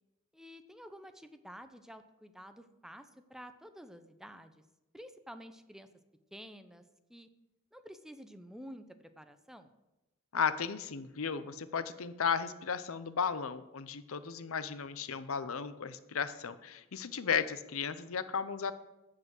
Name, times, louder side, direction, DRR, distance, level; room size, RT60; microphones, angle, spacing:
voice 1, 0.3-4.6 4.9-5.9 6.3-6.8 7.1-7.3 7.7-9.7, equal, ahead, 9 dB, 0.6 m, -50 dB
voice 2, 10.3-18.7, left 6 dB, 65° left, 14 dB, 0.7 m, -35 dB
14.0 x 4.9 x 7.7 m, 0.99 s
head